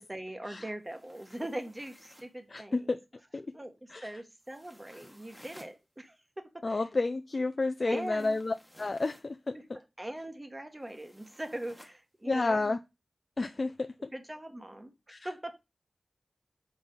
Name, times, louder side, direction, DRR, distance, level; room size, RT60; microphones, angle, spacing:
voice 1, 0.0-2.9 3.5-3.8 4.0-6.8 7.9-8.4 10.0-12.7 14.1-14.9 15.2-15.6, right 1 dB, 20° right, 1.3 m, -41 dB
sound 1, 0.8-2.4 4.4-5.8 7.8-9.3 10.8-12.0, equal, ahead, 1.2 m, -56 dB
voice 2, 2.5-3.0 3.3-3.5 3.9-4.1 6.6-9.8 12.2-12.8 13.4-14.1 15.1-15.3, left 3 dB, 50° left, 0.4 m, -31 dB
5.2 x 4.3 x 5.3 m
wide cardioid pair, 70°, 0 cm